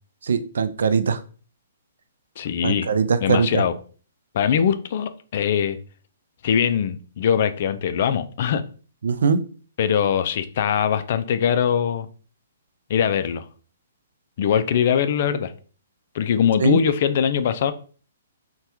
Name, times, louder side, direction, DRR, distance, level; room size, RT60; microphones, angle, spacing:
voice 1, 0.3-1.2 2.6-3.6 9.0-9.4 16.6-16.8, right 5 dB, 75° right, 11 dB, 0.4 m, -21 dB
voice 2, 2.4-2.9 3.2-3.7 4.3-5.8 6.4-8.6 9.8-12.1 12.9-13.4 14.4-15.5 16.1-17.7, left 8 dB, 55° left, 11 dB, 0.3 m, -22 dB
2.8 x 2.2 x 3.4 m, 0.40 s
hypercardioid pair, 135°, 0 cm